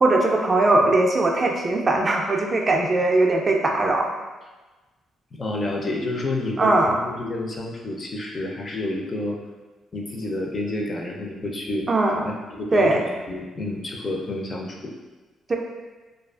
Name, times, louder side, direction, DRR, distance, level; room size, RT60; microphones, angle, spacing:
voice 1, 0.0-4.1 6.6-7.0 11.9-12.3 12.7-13.0 15.5-15.6, right 2 dB, 30° right, 1 dB, 0.3 m, -20 dB
voice 2, 5.3-9.4 9.9-11.9 12.5-14.9, left 2 dB, 35° left, 0 dB, 0.4 m, -29 dB
2.4 x 2.3 x 2.3 m, 1.2 s
cardioid pair, 90°, 0 cm